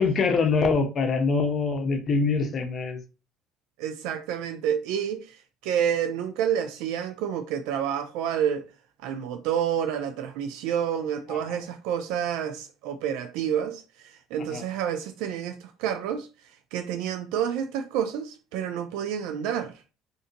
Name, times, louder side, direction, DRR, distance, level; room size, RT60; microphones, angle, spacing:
voice 1, 0.0-3.0 11.3-11.6 14.5-14.6, left 4 dB, 40° left, 0.8 m, -24 dB
voice 2, 3.8-5.4 5.6-8.6 9.0-16.3 16.7-19.7, right 9 dB, 85° right, 0.3 m, -29 dB
2.6 x 2.5 x 3.8 m
cardioid pair, 125°, 0 cm